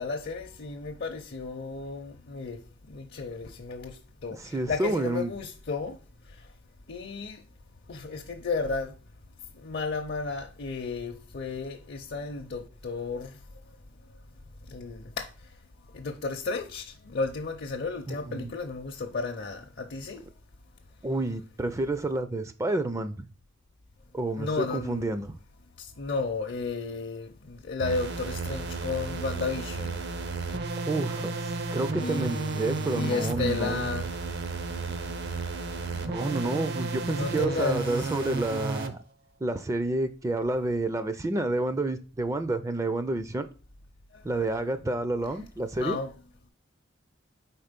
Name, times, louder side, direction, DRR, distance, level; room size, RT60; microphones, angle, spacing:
voice 1, 0.0-2.6 2.9-3.9 4.2-4.4 4.7-5.9 6.9-7.4 7.9-8.9 9.6-13.3 14.7-15.3 15.9-16.8 17.1-20.2 24.4-25.1 26.0-30.0 32.0-34.1 37.2-38.1 44.4-44.5 45.8-46.1, left 4 dB, 55° left, 0.6 m, -33 dB
voice 2, 4.4-5.3 18.1-18.5 21.0-23.2 24.1-25.3 30.8-33.9 35.9-39.0 39.4-43.5 44.2-46.0, right 2 dB, 15° right, 0.4 m, -29 dB
sound 1, 27.8-38.9, right 3 dB, 60° right, 0.6 m, -33 dB
4.4 x 4.3 x 5.1 m
head